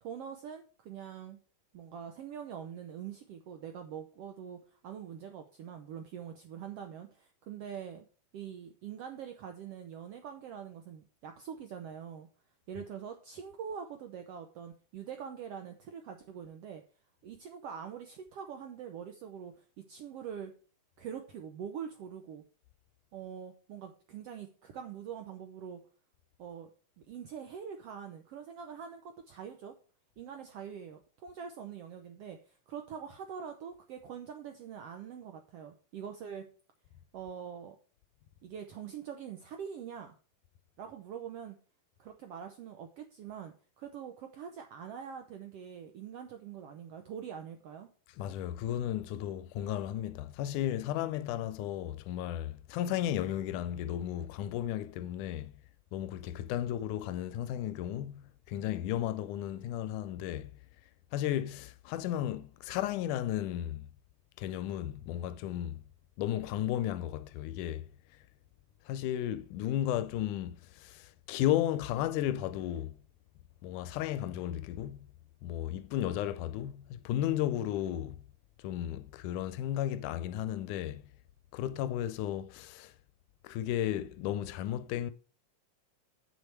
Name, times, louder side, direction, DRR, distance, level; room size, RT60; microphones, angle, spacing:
voice 1, 0.0-1.4 1.7-8.1 8.3-12.3 12.7-16.8 17.2-20.5 21.0-22.4 23.1-25.8 26.4-26.7 27.1-29.7 30.2-36.5 37.1-37.8 38.4-40.2 40.8-41.6 42.0-47.9, right 8 dB, 75° right, 1.4 m, -44 dB
voice 2, 48.2-55.5 55.9-60.5 61.1-63.9 64.4-65.8 66.2-67.8 68.9-72.9 73.6-75.1 75.4-78.2 78.6-81.0 81.5-82.9 83.4-85.1, left 12 dB, 80° left, 2.0 m, -34 dB
8.5 x 6.5 x 4.6 m
omnidirectional pair, 3.7 m